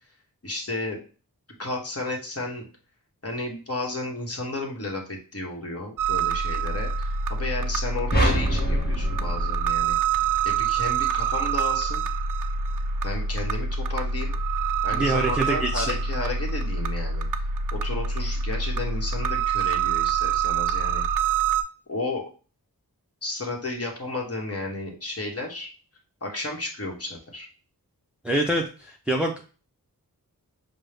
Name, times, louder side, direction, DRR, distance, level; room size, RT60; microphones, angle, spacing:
voice 1, 0.4-1.0 1.6-2.6 3.2-10.0 10.4-12.0 13.0-14.4 14.8-17.2 17.7-21.0 21.9-22.2 23.2-25.7 26.2-27.5, left 2 dB, 40° left, 0 dB, 1.1 m, -33 dB
sound 1, 6.0-21.6, right 5 dB, 60° right, 0.5 m, -26 dB
sound 2, 8.1-10.5, equal, 25° left, 0.9 m, -25 dB
voice 2, 14.9-16.0 28.2-29.4, right 1 dB, 5° right, 1 dB, 0.5 m, -25 dB
5.2 x 2.0 x 3.3 m, 0.37 s
wide cardioid pair, 45°, 36 cm